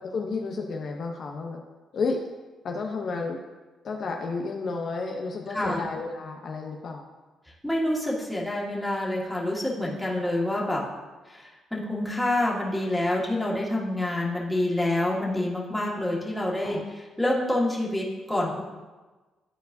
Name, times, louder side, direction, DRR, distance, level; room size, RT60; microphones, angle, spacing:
voice 1, 0.0-1.6 1.9-2.2 2.6-3.4 3.8-7.1 16.6-16.8, left 4 dB, 55° left, 2 dB, 0.7 m, -31 dB
voice 2, 5.5-5.9 7.6-10.9 11.3-18.6, left 1 dB, 5° left, -4 dB, 1.8 m, -27 dB
12.0 x 4.5 x 2.7 m, 1.2 s
cardioid pair, 90°, 0 cm